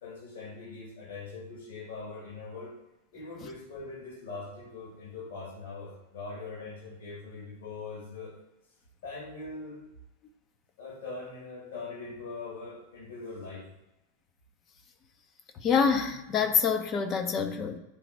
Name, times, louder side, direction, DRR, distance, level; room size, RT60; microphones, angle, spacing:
voice 1, 0.0-2.8 3.1-8.4 9.0-9.8 10.8-13.7, left 3 dB, 60° left, 2.1 m, -41 dB
voice 2, 15.6-17.8, left 6 dB, 30° left, 0.8 m, -26 dB
10.0 x 4.0 x 4.6 m
figure-of-eight pair, 90°, 0 cm